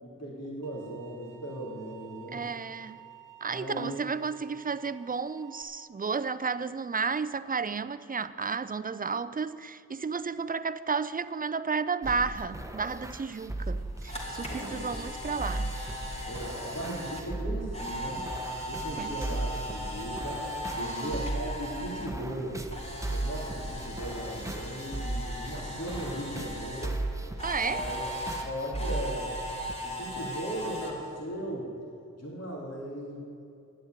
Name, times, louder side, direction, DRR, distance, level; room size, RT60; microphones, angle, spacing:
voice 1, 0.0-2.4 3.5-3.9 14.1-15.0 16.2-18.2 18.7-22.6 23.1-27.0 27.6-28.0 28.4-29.3 29.8-31.7 32.1-33.2, right 1 dB, 50° left, 3.5 m, -38 dB
sound 1, 0.6-5.6, right 10 dB, 90° right, 0.9 m, -52 dB
voice 2, 2.3-3.0 3.4-15.7 19.0-19.4 20.8-21.2 27.4-27.8, right 5 dB, 25° right, 0.5 m, -32 dB
sound 2, 12.0-29.7, right 2 dB, 10° right, 1.1 m, -37 dB
Camera, 13.7-22.1 22.4-26.9 27.4-30.9, equal, 20° left, 3.1 m, -38 dB
11.0 x 7.9 x 9.6 m
cardioid pair, 55°, 32 cm